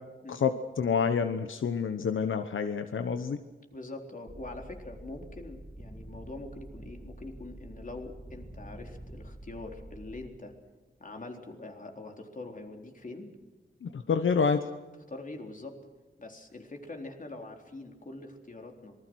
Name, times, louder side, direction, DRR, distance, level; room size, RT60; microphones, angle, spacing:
voice 1, 0.3-3.4 13.8-14.6, left 6 dB, 85° left, 8 dB, 1.1 m, -28 dB
voice 2, 3.7-10.5 11.0-13.3 15.1-15.8 16.2-19.0, left 2 dB, 40° left, 3 dB, 4.0 m, -44 dB
sound 1, 4.3-10.3, right 1 dB, 15° right, 3.4 m, -47 dB
26.5 x 20.5 x 6.3 m, 1.2 s
wide cardioid pair, 85°, 20 cm